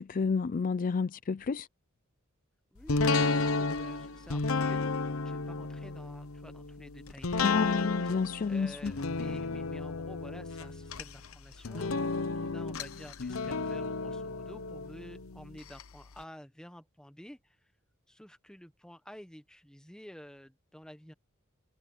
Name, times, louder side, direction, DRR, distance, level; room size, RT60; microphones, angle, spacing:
voice 1, 0.0-1.7 7.4-8.9, left 5 dB, 40° left, 0.4 m, -30 dB
voice 2, 2.7-8.1 8.5-17.6 18.1-21.1, equal, 5° left, 1.3 m, -50 dB
sound 1, 2.9-15.8 16.2-16.3, left 3 dB, 85° left, 0.9 m, -32 dB
head